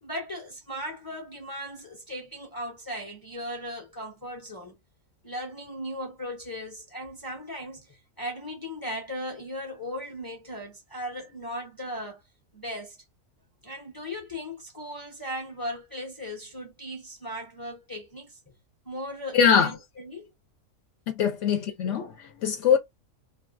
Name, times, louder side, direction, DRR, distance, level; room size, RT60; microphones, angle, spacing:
voice 1, 0.0-4.8 5.2-12.2 12.5-13.0 13.6-18.5 18.8-20.3, equal, 20° left, 0.6 m, -37 dB
voice 2, 19.3-19.7 21.1-22.8, left 7 dB, 65° left, 0.9 m, -22 dB
3.3 x 2.3 x 2.5 m
omnidirectional pair, 1.5 m